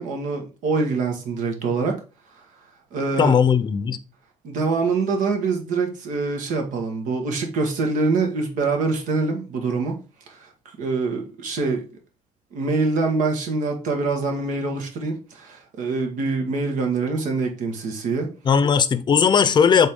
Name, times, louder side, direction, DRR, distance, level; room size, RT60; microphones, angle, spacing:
voice 1, 0.0-2.0 2.9-3.3 4.4-10.0 10.3-10.5 10.8-11.8 12.5-18.3, right 3 dB, 75° right, 1.7 m, -24 dB
voice 2, 3.2-4.0 18.5-19.9, left 6 dB, 35° left, 0.6 m, -17 dB
7.5 x 3.7 x 3.7 m
cardioid pair, 115°, 13 cm